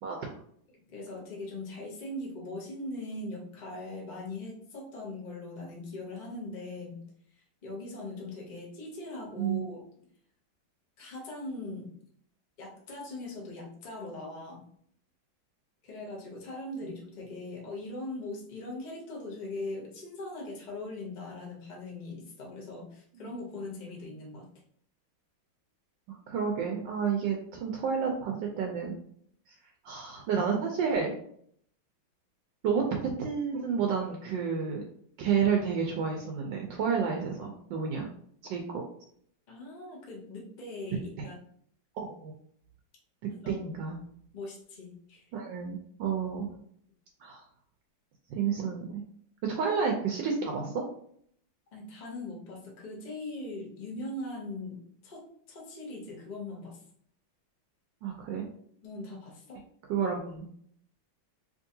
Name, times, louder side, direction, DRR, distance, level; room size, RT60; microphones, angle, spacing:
voice 1, 0.9-7.0 7.6-9.8 11.0-11.9 12.6-14.6 15.8-24.5 39.5-41.4 43.4-43.7 44.3-45.2 51.7-54.8 55.0-56.8 58.8-59.6, left 2 dB, 40° left, -3 dB, 0.6 m, -40 dB
voice 2, 9.4-9.7 16.8-16.9 23.2-23.3 26.1-28.9 29.8-31.1 32.6-34.8 35.2-38.1 38.5-38.8 42.0-42.3 43.5-44.0 45.3-46.5 47.2-47.4 48.3-49.0 49.4-50.8 58.0-58.4 59.9-60.5, right 6 dB, 75° right, 1 dB, 1.2 m, -30 dB
3.6 x 3.0 x 2.6 m, 0.63 s
omnidirectional pair, 2.2 m